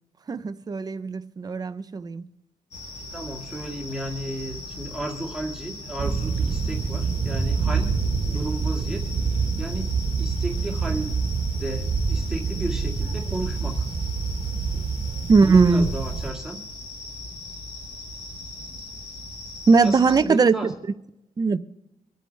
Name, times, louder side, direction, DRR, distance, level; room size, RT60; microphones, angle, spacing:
voice 1, 0.3-2.2 15.3-15.9 19.7-20.5 21.4-21.6, right 4 dB, 25° right, 0.7 m, -19 dB
sound 1, 2.7-20.2, left 2 dB, 50° left, 3.0 m, -39 dB
voice 2, 3.0-8.0 8.3-11.2 11.5-13.9 14.7-14.9 15.4-16.6 19.8-20.7, right 1 dB, 5° right, 2.0 m, -33 dB
sound 2, 6.0-16.3, right 5 dB, 50° right, 1.5 m, -26 dB
26.0 x 9.0 x 3.3 m
wide cardioid pair, 160°, 14 cm